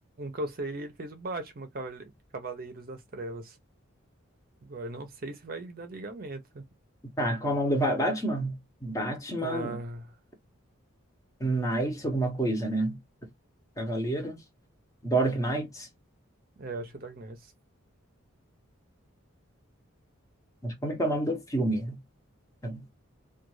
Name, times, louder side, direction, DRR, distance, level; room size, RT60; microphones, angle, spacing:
voice 1, 0.2-3.6 4.6-6.6 9.3-10.1 16.6-17.5, right 2 dB, 45° right, 0.6 m, -38 dB
voice 2, 7.2-9.8 11.4-13.0 13.8-14.4 15.0-15.9 20.6-22.0 22.6-22.9, right 1 dB, 15° left, 0.7 m, -28 dB
2.4 x 2.3 x 3.0 m
head